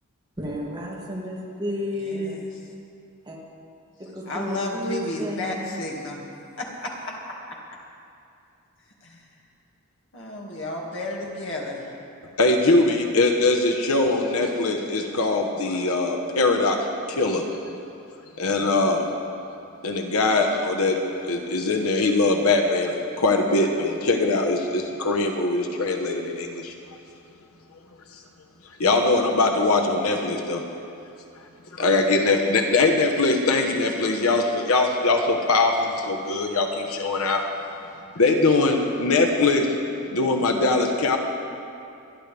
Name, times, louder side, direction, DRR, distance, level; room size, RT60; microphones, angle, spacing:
voice 1, 0.4-2.4 3.3-3.4 4.1-5.7, equal, 20° right, -5 dB, 2.4 m, -31 dB
voice 2, 2.0-2.6 4.3-6.2 6.6-7.3 9.0-9.2 10.1-11.8, left 2 dB, 60° left, -2 dB, 2.2 m, -32 dB
voice 3, 12.4-16.8 17.1-17.4 18.4-19.0 19.8-21.0 21.3-26.7 28.8-30.6 31.8-37.4 38.1-39.7 40.1-41.2, left 3 dB, 75° left, 2 dB, 1.2 m, -21 dB
25.0 x 11.0 x 3.5 m, 2.6 s
head